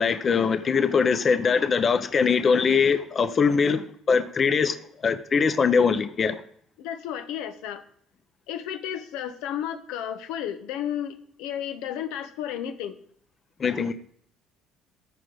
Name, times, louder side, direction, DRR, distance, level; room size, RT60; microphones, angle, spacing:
voice 1, 0.0-4.8 5.0-6.3 13.6-13.9, left 5 dB, 35° left, 0.7 m, -22 dB
voice 2, 6.8-7.8 8.5-13.0, left 10 dB, 85° left, 0.9 m, -33 dB
14.0 x 5.1 x 3.9 m
cardioid pair, 105°, 0 cm